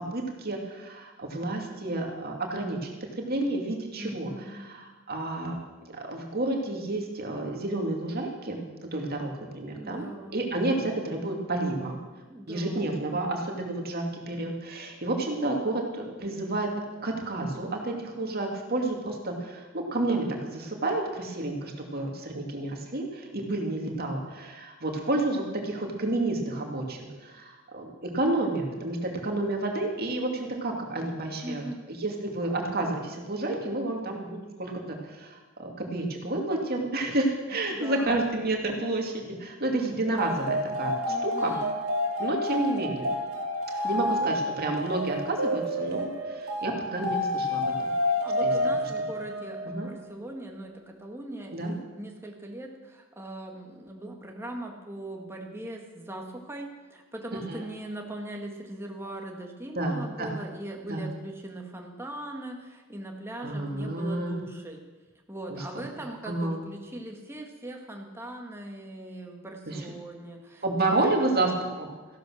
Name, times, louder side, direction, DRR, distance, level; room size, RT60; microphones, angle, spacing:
voice 1, 0.1-5.6 5.9-10.0 10.3-12.0 12.5-16.7 17.0-31.6 32.0-41.5 42.2-43.1 43.8-47.9 48.4-48.5 49.6-49.9 51.5-51.7 57.3-57.6 59.8-60.4 60.9-61.1 63.4-64.4 65.5-65.6 66.2-66.6 69.7-69.8 70.6-71.9, right 2 dB, 45° right, 1 dB, 2.5 m, -30 dB
voice 2, 4.0-4.7 9.8-10.4 12.3-12.9 31.4-31.9 37.5-38.2 41.0-41.8 43.7-44.3 48.0-64.8 65.3-70.6 71.0-71.4, right 1 dB, 10° right, 1 dB, 1.8 m, -40 dB
sound 1, 40.1-49.9, left 1 dB, 80° right, 2.4 m, -29 dB
15.0 x 12.0 x 6.4 m, 1.3 s
head